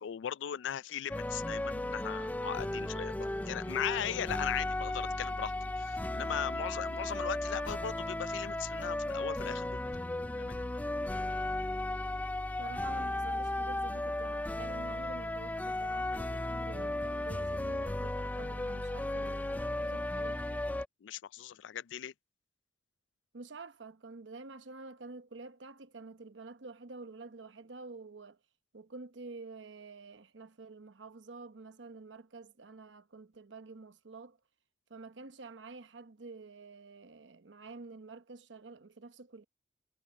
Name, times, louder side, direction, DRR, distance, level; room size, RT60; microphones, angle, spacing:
voice 1, 0.0-9.8 10.4-10.6 21.0-22.1, left 9 dB, 90° left, 0.4 m, -38 dB
sound 1, 1.1-20.8, left 1 dB, 10° left, 0.3 m, -35 dB
voice 2, 12.6-20.6 23.3-28.4 28.7-34.4 34.9-39.4, right 3 dB, 90° right, 0.9 m, -49 dB
head